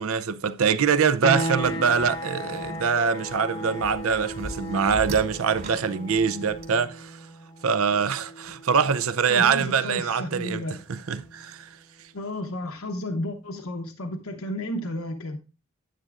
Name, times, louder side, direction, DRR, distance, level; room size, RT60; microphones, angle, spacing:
voice 1, 0.0-7.2 7.6-10.6 10.9-11.7, right 6 dB, 70° right, 0.5 m, -24 dB
sound 1, 1.2-11.7, equal, 20° left, 0.8 m, -36 dB
sound 2, 1.6-6.6, equal, 45° right, 2.8 m, -40 dB
voice 2, 9.3-10.8 12.1-15.4, left 1 dB, 70° left, 0.9 m, -32 dB
10.0 x 9.0 x 2.5 m
head